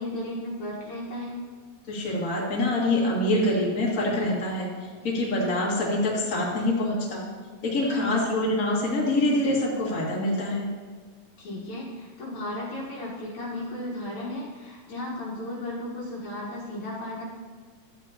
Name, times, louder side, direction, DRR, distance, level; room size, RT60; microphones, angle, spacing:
voice 1, 0.0-1.4 7.8-8.3 11.4-17.2, left 1 dB, 65° left, -4 dB, 2.6 m, -35 dB
voice 2, 1.9-4.7 5.0-7.2 7.6-10.7, left 1 dB, 30° left, -5 dB, 2.2 m, -25 dB
13.0 x 8.7 x 2.9 m, 1.6 s
omnidirectional pair, 3.7 m